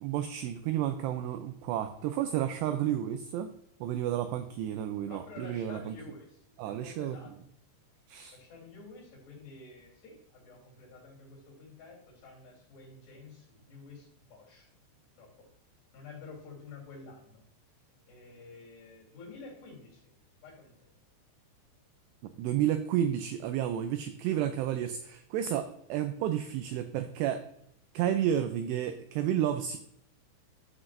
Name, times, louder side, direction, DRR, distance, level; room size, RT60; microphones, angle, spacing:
voice 1, 0.0-3.5 3.8-5.9 6.6-7.2 8.1-8.4 22.4-27.5 27.9-29.8, right 10 dB, 90° right, 8 dB, 2.4 m, -31 dB
voice 2, 5.1-7.3 8.3-14.7 15.2-15.5 15.9-17.4 18.1-20.1 20.4-20.7, left 3 dB, 60° left, -3 dB, 5.3 m, -50 dB
13.0 x 6.0 x 2.5 m, 0.72 s
omnidirectional pair, 5.5 m